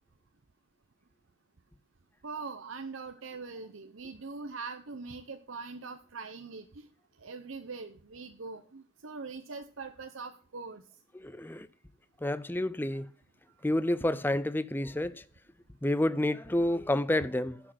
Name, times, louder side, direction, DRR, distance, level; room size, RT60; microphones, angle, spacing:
voice 1, 2.2-6.9 7.2-10.8, right 4 dB, 70° right, 0.8 m, -42 dB
voice 2, 11.2-11.7 12.2-13.1 13.6-15.2 15.8-17.6, left 1 dB, 10° left, 0.4 m, -29 dB
11.0 x 6.3 x 7.7 m
head